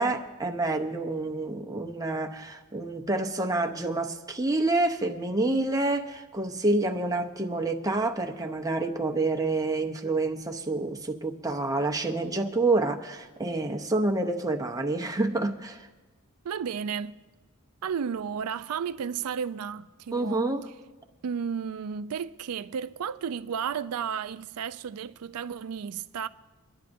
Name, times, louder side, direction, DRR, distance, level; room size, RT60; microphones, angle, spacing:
voice 1, 0.0-15.9 20.1-20.6, right 2 dB, 15° right, 0.7 m, -28 dB
voice 2, 16.4-17.2 17.8-20.5 21.2-26.3, right 7 dB, 80° right, 0.4 m, -33 dB
23.5 x 11.0 x 2.6 m
head